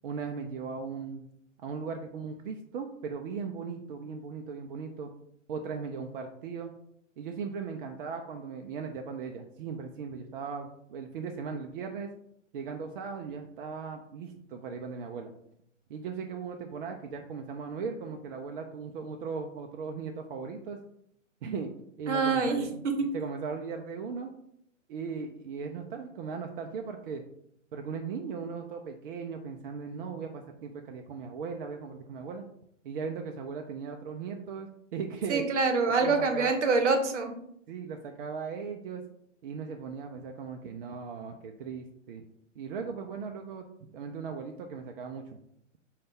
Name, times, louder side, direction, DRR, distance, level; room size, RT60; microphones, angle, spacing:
voice 1, 0.0-1.3 1.6-5.1 5.5-6.7 7.2-12.1 12.5-15.3 15.9-20.8 21.4-21.7 22.0-24.3 24.9-27.2 27.7-32.4 32.8-35.4 35.9-36.5 37.7-39.0 39.4-42.2 42.6-43.7 43.9-45.2, right 5 dB, 45° right, 4 dB, 0.5 m, -38 dB
voice 2, 22.1-22.9 35.3-37.3, right 4 dB, 65° right, 5 dB, 0.9 m, -26 dB
5.0 x 2.3 x 3.5 m, 0.72 s
figure-of-eight pair, 120°, 37 cm